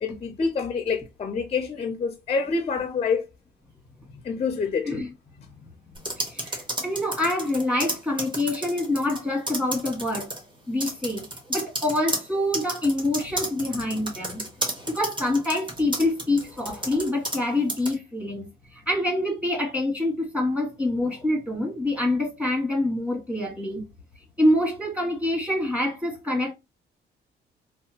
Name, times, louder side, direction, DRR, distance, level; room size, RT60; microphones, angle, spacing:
voice 1, 0.0-3.3 4.2-4.9, left 5 dB, 30° left, 0.5 m, -27 dB
sound 1, 6.0-9.2 9.5-10.4 10.8-17.4 17.7-17.9, right 1 dB, 25° right, 1.1 m, -31 dB
voice 2, 6.3-10.3 10.7-11.2 11.5-14.4 14.9-18.5 18.7-23.8 24.4-26.5, left 1 dB, 5° right, 1.4 m, -26 dB
2.7 x 2.3 x 2.7 m
cardioid pair, 90°, 20 cm